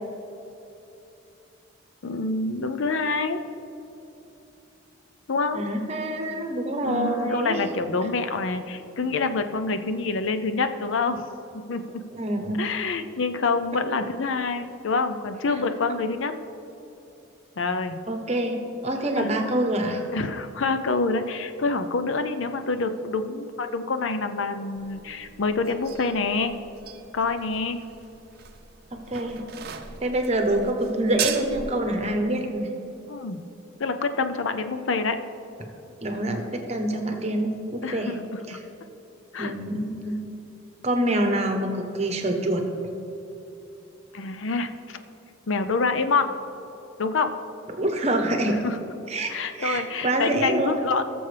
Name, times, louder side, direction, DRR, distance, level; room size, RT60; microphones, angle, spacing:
voice 1, 2.0-3.4 5.3-5.6 6.8-11.2 11.5-12.0 12.6-16.4 17.6-18.0 19.2-19.3 20.1-26.5 27.1-27.8 33.1-33.4 33.8-35.2 37.8-38.4 39.3-39.5 44.1-45.0 45.5-46.3 47.0-47.3 48.4-48.8 49.3-51.0, left 4 dB, 70° left, 9 dB, 0.5 m, -26 dB
voice 2, 5.5-7.6 12.1-12.6 18.1-20.0 28.9-29.4 30.0-32.7 36.0-38.2 38.5-38.6 39.4-40.2 40.8-42.6 47.7-48.7 49.1-50.8, right 1 dB, 30° right, 4 dB, 1.0 m, -26 dB
sound 1, 24.8-31.8, right 8 dB, 50° right, 0.6 m, -38 dB
17.5 x 7.0 x 3.4 m, 3.0 s
head